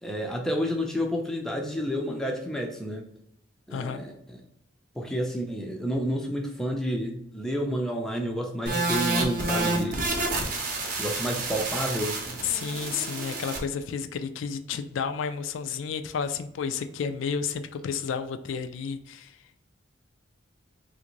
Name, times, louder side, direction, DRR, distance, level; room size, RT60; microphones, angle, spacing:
voice 1, 0.0-3.1 3.7-4.4 4.9-10.1 11.0-12.2, equal, 5° left, 1 dB, 0.4 m, -30 dB
voice 2, 3.7-4.0 12.4-19.4, left 6 dB, 75° left, 9 dB, 0.3 m, -31 dB
sound 1, 8.7-13.6, right 2 dB, 45° right, 0.7 m, -29 dB
3.4 x 2.5 x 2.9 m, 0.78 s
head